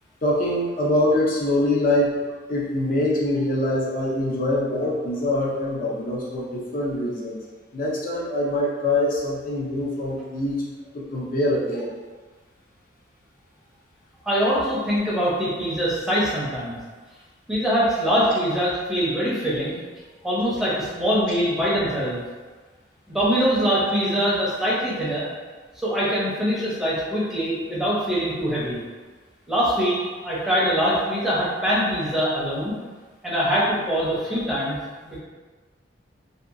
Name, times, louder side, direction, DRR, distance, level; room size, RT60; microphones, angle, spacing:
voice 1, 0.2-2.1 2.5-7.4 7.7-10.6 10.9-11.9, left 1 dB, 45° left, -5 dB, 0.4 m, -24 dB
voice 2, 14.2-16.8 17.5-19.8 20.2-22.2 23.1-25.2 25.8-28.8 29.5-32.7 33.2-34.7 35.0-35.2, equal, ahead, -8 dB, 0.6 m, -23 dB
2.7 x 2.2 x 2.4 m, 1.4 s
head